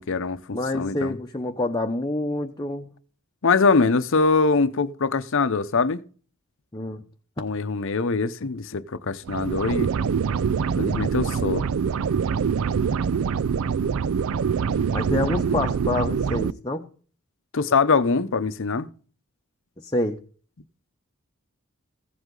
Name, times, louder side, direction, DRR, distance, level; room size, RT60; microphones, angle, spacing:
voice 1, 0.0-1.2 3.4-6.0 7.4-9.9 10.8-11.7 17.5-18.9, left 4 dB, 60° left, 0.7 m, -23 dB
voice 2, 0.5-2.9 6.7-7.0 14.9-16.8 19.8-20.2, left 2 dB, 20° left, 0.8 m, -27 dB
sound 1, 9.3-16.5, right 6 dB, 70° right, 0.4 m, -24 dB
15.5 x 8.1 x 3.8 m
head